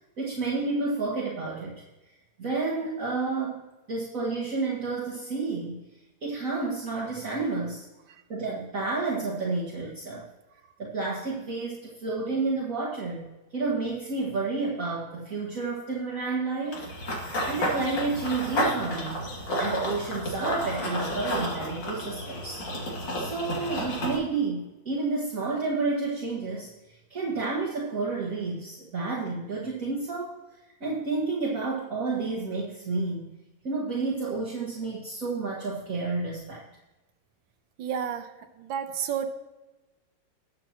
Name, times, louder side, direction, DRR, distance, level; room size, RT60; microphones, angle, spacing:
voice 1, 0.2-1.8 2.4-5.8 6.2-7.9 8.3-10.2 10.8-13.3 13.5-16.9 17.5-19.2 19.6-22.6 23.2-26.7 27.1-30.4 30.8-33.3 33.6-36.6, right 3 dB, 45° right, -5 dB, 2.1 m, -30 dB
Run / Bird vocalization bird call bird song, 16.7-24.2, equal, 70° left, 3.3 m, -31 dB
voice 2, 37.8-38.3 38.6-39.3, right 8 dB, 90° right, 8 dB, 1.7 m, -30 dB
20.5 x 7.6 x 3.0 m, 1.1 s
omnidirectional pair, 2.1 m